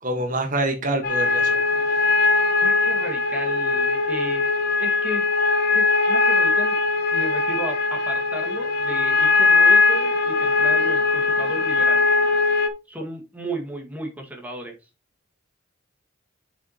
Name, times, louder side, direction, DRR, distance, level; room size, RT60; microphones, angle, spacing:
voice 1, 0.0-1.6, right 1 dB, 40° right, 5 dB, 1.4 m, -26 dB
sound 1, 1.0-12.7, left 3 dB, 50° left, 1.0 m, -20 dB
voice 2, 2.6-5.3 5.7-6.8 7.1-12.1 12.9-14.8, right 1 dB, 10° right, 1 dB, 1.7 m, -34 dB
8.1 x 6.9 x 2.9 m, 0.27 s
head